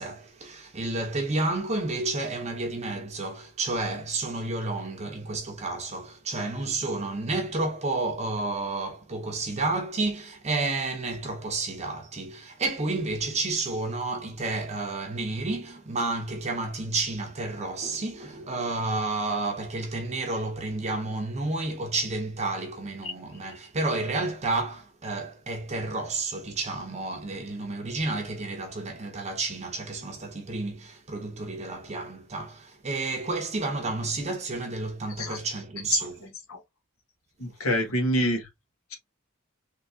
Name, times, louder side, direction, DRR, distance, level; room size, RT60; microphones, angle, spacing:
voice 1, 0.0-36.2, right 2 dB, 30° right, 0.8 m, -31 dB
voice 2, 37.4-38.5, equal, 70° left, 1.3 m, -26 dB
3.6 x 2.8 x 2.7 m
head